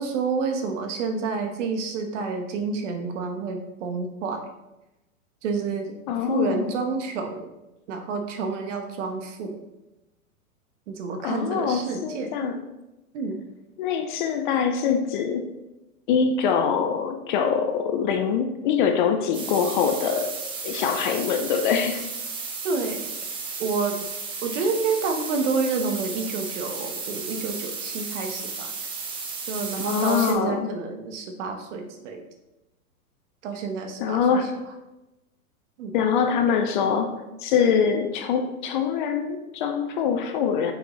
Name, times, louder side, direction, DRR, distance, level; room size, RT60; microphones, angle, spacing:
voice 1, 0.0-4.4 5.4-7.5 7.9-9.6 10.9-12.5 13.1-13.5 22.6-23.1 23.6-24.0 24.4-28.7 29.5-32.2 33.4-34.5 35.8-35.9, right 4 dB, 55° right, 5 dB, 1.1 m, -29 dB
voice 2, 6.1-6.7 11.2-12.6 13.8-15.5 16.1-20.3 20.6-22.0 29.8-30.7 34.0-34.5 35.9-37.1 37.4-40.7, left 7 dB, 35° left, 7 dB, 0.5 m, -24 dB
sound 1, 19.3-30.3, right 4 dB, 10° right, 0.5 m, -34 dB
6.5 x 5.0 x 3.0 m, 0.97 s
hypercardioid pair, 130°, 44 cm